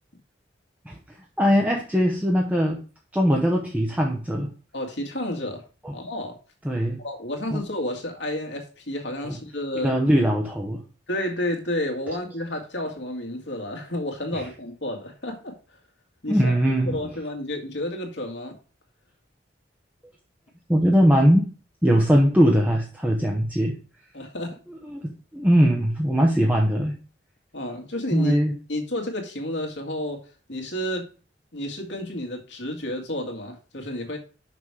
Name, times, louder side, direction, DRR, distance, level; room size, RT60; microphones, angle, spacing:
voice 1, 1.4-2.8 3.1-4.5 5.8-5.9 6.6-7.0 7.5-7.6 9.2-9.4 9.8-10.8 14.3-14.4 16.3-16.9 20.7-21.5 21.8-23.8 24.9-26.9 28.1-28.5, equal, 10° right, -1 dB, 0.9 m, -20 dB
voice 2, 4.7-5.6 5.9-6.3 7.0-9.9 11.1-15.5 16.2-16.5 16.8-18.5 24.1-24.6 27.5-28.4 28.7-30.2 30.5-31.1 31.5-34.2, left 1 dB, 70° left, 2 dB, 2.0 m, -31 dB
6.2 x 6.1 x 4.8 m, 0.37 s
head